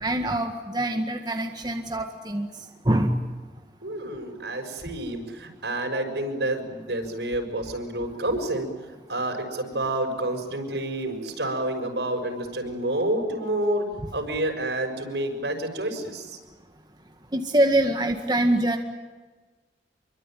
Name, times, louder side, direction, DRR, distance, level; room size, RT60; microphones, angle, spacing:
voice 1, 0.0-2.5 2.9-3.1 17.3-18.8, right 1 dB, 25° right, 3 dB, 1.8 m, -24 dB
voice 2, 3.8-8.7 9.1-13.8 14.1-16.4, right 1 dB, 70° right, 5 dB, 6.3 m, -29 dB
27.5 x 24.0 x 9.1 m, 1.3 s
head